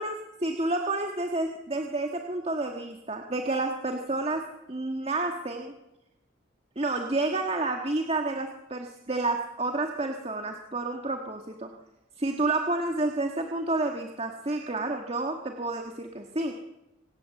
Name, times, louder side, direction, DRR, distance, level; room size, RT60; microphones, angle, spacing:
voice 1, 0.0-4.4 4.7-5.7 6.7-11.7 12.2-16.5, right 2 dB, 30° right, 3 dB, 1.6 m, -30 dB
26.5 x 17.5 x 7.7 m, 0.98 s
head